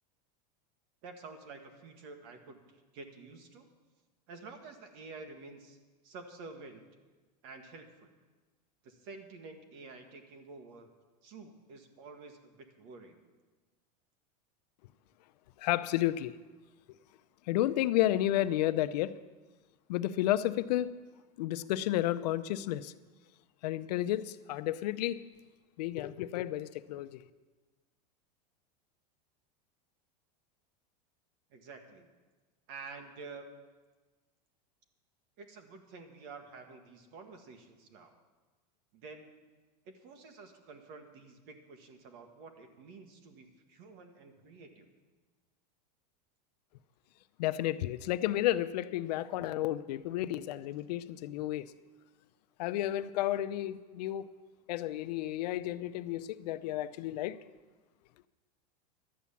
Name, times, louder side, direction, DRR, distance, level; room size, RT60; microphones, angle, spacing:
voice 1, 1.0-3.7 4.3-5.8 6.0-6.8 7.4-8.1 8.8-10.9 11.2-13.2 31.5-32.1 32.7-33.5 35.4-38.2 38.9-39.4 39.8-44.9, right 4 dB, 50° right, 6 dB, 1.7 m, -50 dB
voice 2, 15.6-16.3 17.5-19.2 19.9-21.0 21.4-22.9 23.6-25.3 25.8-27.2 47.4-51.6 52.6-54.3 54.7-57.4, left 14 dB, 75° left, 13 dB, 0.6 m, -32 dB
12.5 x 8.4 x 7.1 m, 1.3 s
supercardioid pair, 150°, 21 cm